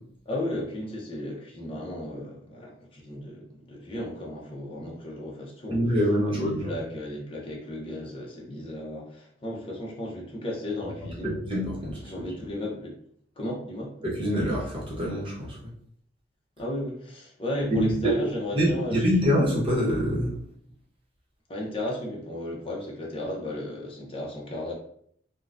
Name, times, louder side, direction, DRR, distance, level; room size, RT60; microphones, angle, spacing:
voice 1, 0.3-5.8 6.3-11.4 12.0-13.0 13.4-13.9 16.6-19.1 21.5-24.7, left 1 dB, 30° left, -2 dB, 0.7 m, -34 dB
voice 2, 5.7-6.7 11.2-12.0 14.0-15.6 17.7-18.1 18.5-20.3, equal, 30° right, -5 dB, 1.0 m, -25 dB
3.7 x 2.2 x 2.5 m, 0.65 s
head